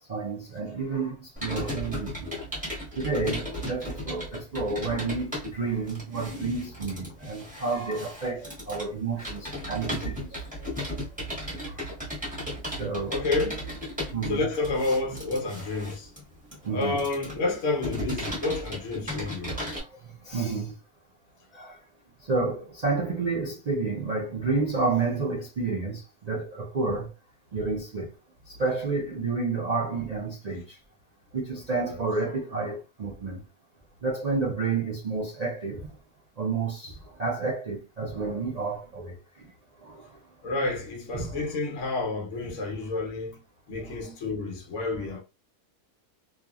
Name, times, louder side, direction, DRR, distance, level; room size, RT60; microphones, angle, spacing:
voice 1, 0.1-2.3 3.0-10.4 11.7-11.8 12.8-13.2 14.1-14.5 16.6-17.0 19.4-19.9 20.2-20.7 21.5-21.8 22.3-27.1 27.5-28.1 28.5-30.8 31.3-33.4 34.0-35.9 36.4-39.5 39.8-40.0 41.1-41.4 43.7-43.9, right 4 dB, 65° right, 0.4 m, -30 dB
Computer keyboard, 1.4-19.8, equal, 5° right, 1.0 m, -35 dB
voice 2, 13.1-13.8 14.3-16.1 16.7-19.6 31.9-32.0 40.4-43.4 43.7-45.2, left 3 dB, 60° left, 1.0 m, -30 dB
2.9 x 2.4 x 2.3 m
omnidirectional pair, 1.6 m